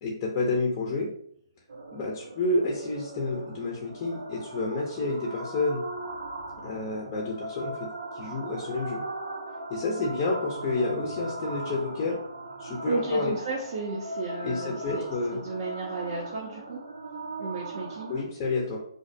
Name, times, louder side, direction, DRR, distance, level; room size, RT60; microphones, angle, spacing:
voice 1, 0.0-1.1 1.9-5.8 6.6-9.1 9.7-12.2 12.6-13.3 14.4-15.4 18.1-18.8, left 3 dB, 25° left, -2 dB, 0.4 m, -29 dB
sound 1, 1.7-18.2, right 2 dB, 85° right, 0.6 m, -39 dB
voice 2, 12.9-15.0 15.3-16.8 17.4-18.1, right 3 dB, 45° right, -2 dB, 0.5 m, -33 dB
2.4 x 2.0 x 2.5 m, 0.65 s
hypercardioid pair, 160°, 3 cm